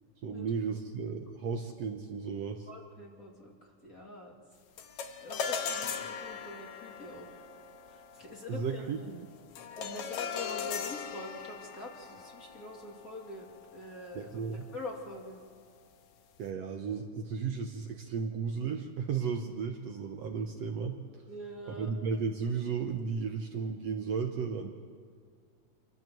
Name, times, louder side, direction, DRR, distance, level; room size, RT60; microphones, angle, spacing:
voice 1, 0.2-2.7 8.5-9.3 14.1-14.7 16.4-21.0 21.7-24.7, right 5 dB, 65° right, 3 dB, 2.0 m, -34 dB
voice 2, 2.7-4.4 5.2-7.3 7.9-9.1 9.8-15.4 21.3-21.9, left 1 dB, 30° left, -1 dB, 2.5 m, -45 dB
sound 1, 4.8-14.3, left 6 dB, 70° left, 2.4 m, -39 dB
26.5 x 14.0 x 7.8 m, 2.1 s
omnidirectional pair, 3.6 m